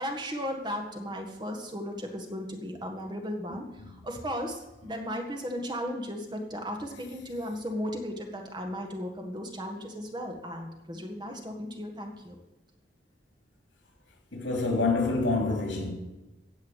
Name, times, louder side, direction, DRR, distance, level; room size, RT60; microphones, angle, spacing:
voice 1, 0.0-3.7 4.0-12.4, equal, 25° right, 1.6 m, -35 dB
voice 2, 14.3-15.9, left 3 dB, 75° left, 3.6 m, -26 dB
16.0 x 5.6 x 8.2 m
head